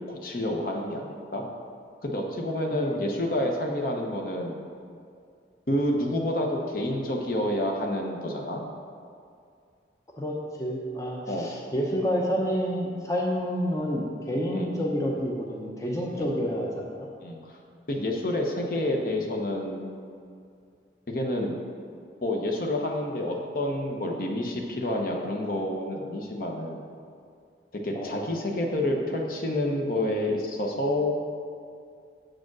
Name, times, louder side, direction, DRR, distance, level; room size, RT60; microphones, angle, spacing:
voice 1, 0.0-1.4 2.0-4.6 5.7-8.6 11.3-11.5 14.5-14.8 16.1-16.3 17.2-17.6 17.9-19.9 21.1-21.5 22.2-26.8 27.7-31.1, left 1 dB, 50° left, 1 dB, 0.9 m, -29 dB
voice 2, 2.7-3.0 10.2-17.1 27.9-28.1, equal, 15° left, -2 dB, 0.7 m, -29 dB
7.6 x 5.0 x 6.0 m, 2.3 s
head